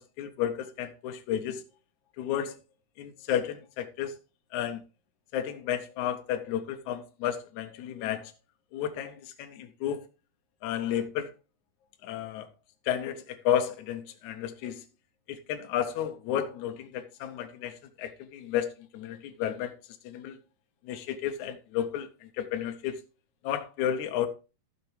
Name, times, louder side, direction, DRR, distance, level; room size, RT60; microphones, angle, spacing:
voice 1, 0.0-1.6 2.2-2.6 3.0-4.1 4.5-4.8 5.3-8.3 8.7-10.0 10.6-11.3 12.0-12.5 12.9-14.8 15.3-19.7 20.0-20.4 20.8-23.0 23.4-24.3, left 10 dB, 80° left, 1.7 m, -32 dB
12.0 x 6.7 x 3.3 m
omnidirectional pair, 4.5 m